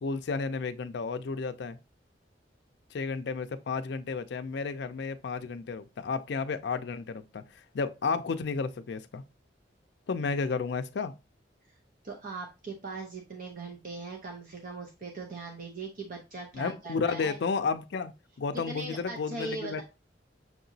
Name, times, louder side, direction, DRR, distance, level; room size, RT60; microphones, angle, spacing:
voice 1, 0.0-1.8 2.9-9.2 10.1-11.1 16.5-18.1 18.4-19.8, left 4 dB, 65° left, 0.4 m, -32 dB
voice 2, 12.0-17.4 18.7-19.8, right 3 dB, 50° right, 0.7 m, -40 dB
5.9 x 2.9 x 2.7 m
head